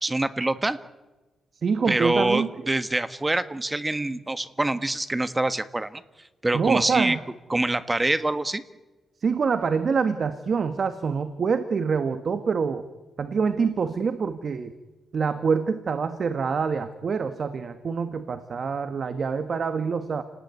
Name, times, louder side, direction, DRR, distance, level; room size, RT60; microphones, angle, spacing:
voice 1, 0.0-0.8 1.9-6.0 6.4-7.2 7.5-8.6, right 2 dB, 15° right, 12 dB, 1.4 m, -25 dB
voice 2, 1.6-2.5 6.5-7.2 9.2-12.9 13.2-14.7 15.1-20.2, right 5 dB, 50° right, 9 dB, 1.6 m, -26 dB
29.5 x 19.0 x 9.5 m, 1.1 s
cardioid pair, 115°, 0 cm